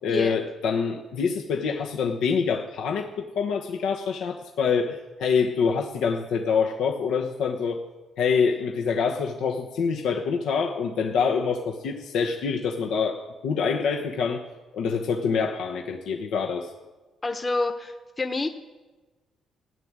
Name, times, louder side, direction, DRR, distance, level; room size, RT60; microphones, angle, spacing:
voice 1, 0.0-7.8 8.2-14.4 14.7-16.7, left 5 dB, 85° left, 1 dB, 1.1 m, -26 dB
voice 2, 17.2-18.5, left 2 dB, 25° left, 5 dB, 1.1 m, -28 dB
15.5 x 7.5 x 9.7 m, 1.2 s
cardioid pair, 90°, 0 cm